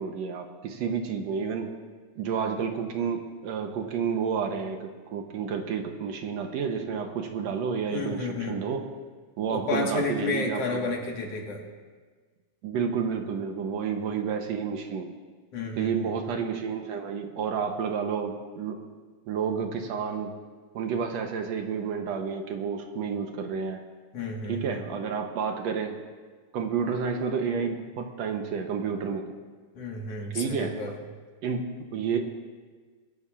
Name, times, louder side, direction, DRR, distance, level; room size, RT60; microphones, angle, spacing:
voice 1, 0.0-1.7 2.2-8.9 9.4-10.9 12.6-15.1 15.8-18.8 19.3-20.3 20.7-23.8 24.5-26.0 26.5-29.3 30.3-30.8 31.4-32.2, right 6 dB, 70° right, 4 dB, 2.0 m, -30 dB
voice 2, 7.9-8.6 9.5-11.6 15.5-16.1 24.1-24.9 29.8-30.9, left 3 dB, 60° left, 0 dB, 2.5 m, -31 dB
24.0 x 12.5 x 2.5 m, 1.5 s
omnidirectional pair, 3.3 m